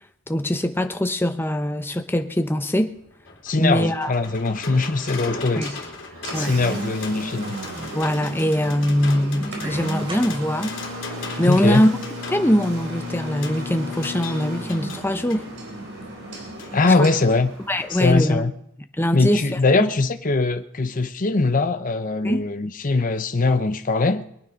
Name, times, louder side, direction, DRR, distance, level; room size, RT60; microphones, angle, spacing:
voice 1, 0.3-2.9 3.6-4.1 5.6-5.8 6.3-6.6 7.9-10.7 11.4-11.9 12.3-15.4 17.0-17.1 17.7-18.5 19.0-19.9 22.2-22.4, equal, 10° left, 0.9 m, -22 dB
sound 1, 2.9-15.4 16.6-16.7 17.1-17.2, left 3 dB, 60° left, 3.5 m, -38 dB
voice 2, 3.4-5.7 6.4-7.6 11.5-11.8 16.7-17.5 17.9-18.5 19.1-24.2, left 3 dB, 40° left, 0.8 m, -21 dB
Engine, 4.2-18.2, equal, 55° right, 4.2 m, -34 dB
sound 2, 10.1-11.8 12.2-12.3 12.7-12.8 13.1-13.2, right 1 dB, 25° right, 2.9 m, -42 dB
22.5 x 9.5 x 5.2 m
head